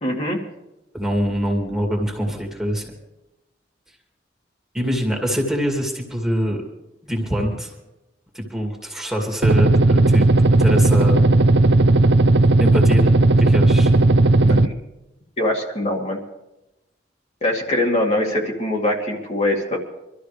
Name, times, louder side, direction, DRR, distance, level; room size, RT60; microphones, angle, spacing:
voice 1, 0.0-0.4 14.4-14.7 15.4-16.2 17.4-19.8, left 1 dB, 40° left, -2 dB, 2.4 m, -22 dB
voice 2, 0.9-2.9 4.7-6.6 7.0-7.7 8.3-10.3 10.6-11.3 12.6-13.1 13.4-13.9, equal, 5° right, 0 dB, 2.5 m, -24 dB
sound 1, 9.4-14.7, right 2 dB, 75° right, 0.6 m, -15 dB
24.5 x 13.0 x 3.4 m, 0.93 s
head